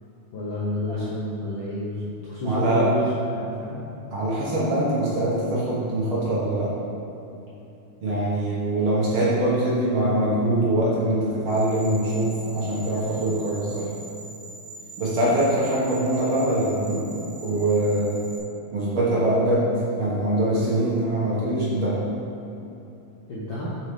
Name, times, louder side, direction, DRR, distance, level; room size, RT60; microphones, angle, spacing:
voice 1, 0.3-3.8 20.6-20.8 23.3-23.7, left 1 dB, 60° left, -8 dB, 1.3 m, -29 dB
voice 2, 2.4-2.9 4.1-6.7 8.0-13.9 15.0-18.2 18.7-19.7 20.0-22.0, right 1 dB, 50° right, -7 dB, 2.0 m, -23 dB
sound 1, 11.5-18.4, right 2 dB, 35° right, 1.0 m, -43 dB
7.2 x 6.3 x 3.7 m, 2.9 s
omnidirectional pair, 3.3 m